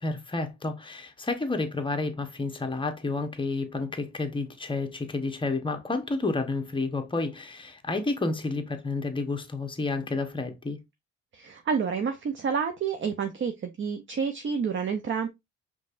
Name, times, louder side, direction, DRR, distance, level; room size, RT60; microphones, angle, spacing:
voice 1, 0.0-10.8, left 3 dB, 15° left, 1.0 m, -30 dB
voice 2, 11.3-15.3, right 6 dB, 40° right, 0.7 m, -29 dB
5.2 x 3.3 x 2.5 m
cardioid pair, 90°, 30 cm